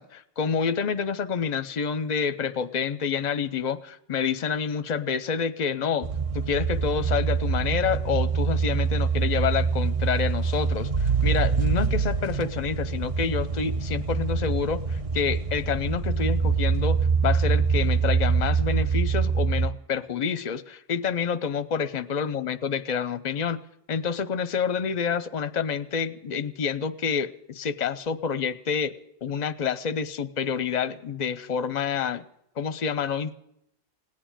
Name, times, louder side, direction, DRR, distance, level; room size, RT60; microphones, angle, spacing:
voice 1, 0.0-6.1 6.3-23.6 23.9-29.0 29.2-32.2 32.6-33.3, left 6 dB, 45° left, 14 dB, 0.7 m, -28 dB
sound 1, 6.0-19.7, right 5 dB, 35° right, 0.7 m, -25 dB
17.5 x 9.3 x 8.9 m, 0.80 s
omnidirectional pair, 1.2 m